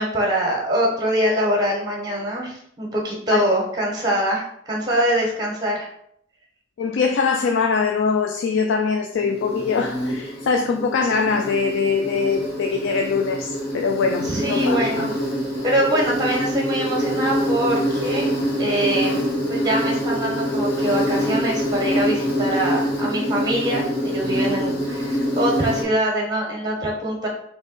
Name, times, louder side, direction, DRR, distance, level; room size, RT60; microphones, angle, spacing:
voice 1, 0.0-5.9 14.2-15.1 15.6-18.3 18.6-19.2 19.5-27.3, right 1 dB, 20° right, 1.2 m, -23 dB
voice 2, 6.8-15.1, left 5 dB, 85° left, 0.3 m, -22 dB
Insect, 9.1-25.8, equal, 60° left, 1.3 m, -25 dB
3.6 x 2.9 x 4.1 m
head